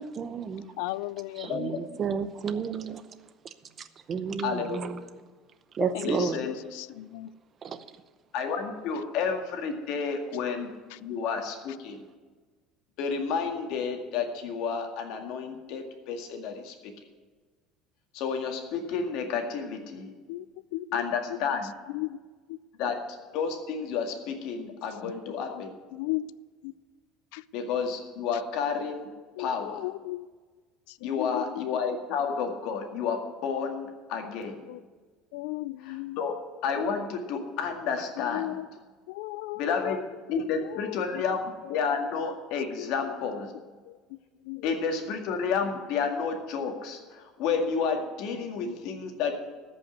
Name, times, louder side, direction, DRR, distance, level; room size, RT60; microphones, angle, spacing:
voice 1, 0.0-0.6 1.4-3.0 4.1-5.0 5.8-6.4 7.6-7.8, right 6 dB, 30° right, 0.7 m, -31 dB
voice 2, 0.8-1.5 6.4-6.5 7.0-7.3 20.3-20.4 20.7-20.8 21.9-22.1 25.3-25.4 25.9-26.2 29.4-29.5 29.8-30.3 31.0-31.4 34.7-34.8 35.3-36.2 38.3-38.6 39.2-39.6 44.5-44.6, left 19 dB, 90° left, 0.4 m, -34 dB
voice 3, 1.5-1.8 4.4-4.9 5.8-6.6 8.3-10.7 11.0-12.0 13.0-16.9 18.1-20.1 20.9-21.7 22.8-23.0 23.3-25.7 27.5-29.1 29.4-29.8 31.0-34.6 35.8-36.3 36.6-38.6 39.6-40.0 40.3-43.5 44.6-49.5, left 5 dB, 65° left, 2.0 m, -31 dB
14.0 x 5.6 x 9.4 m
cardioid pair, 155°, 0 cm